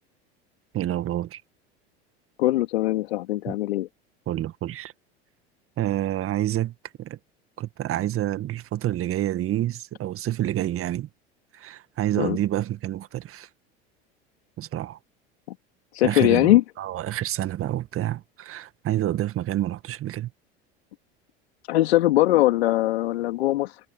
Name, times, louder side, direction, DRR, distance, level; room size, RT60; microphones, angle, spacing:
voice 1, 0.7-1.4 3.5-3.6 4.3-4.9 5.8-6.7 7.0-7.2 7.6-11.1 11.5-13.5 14.6-15.0 16.0-20.3, right 13 dB, 45° right, 1.8 m, -28 dB
voice 2, 2.4-3.9 12.2-12.4 15.9-16.6 21.7-23.8, left 16 dB, 80° left, 2.2 m, -21 dB
hypercardioid pair, 80°, 32 cm